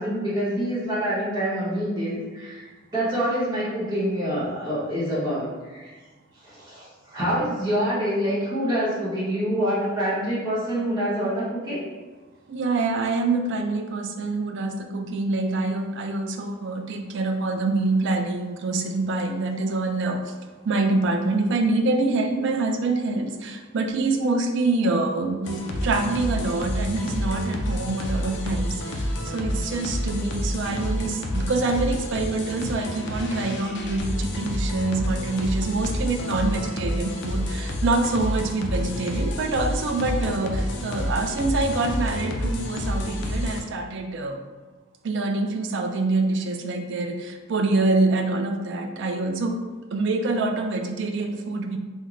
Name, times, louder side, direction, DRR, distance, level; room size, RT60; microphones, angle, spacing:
voice 1, 0.0-5.9 6.4-11.8, equal, 20° right, -12 dB, 0.9 m, -26 dB
voice 2, 12.5-20.4 20.6-44.4 45.0-49.6 49.9-51.8, right 3 dB, 60° right, 5 dB, 0.3 m, -25 dB
sound 1, 25.4-43.6, left 1 dB, 55° left, 0.4 m, -29 dB
3.6 x 2.1 x 3.0 m, 1.3 s
head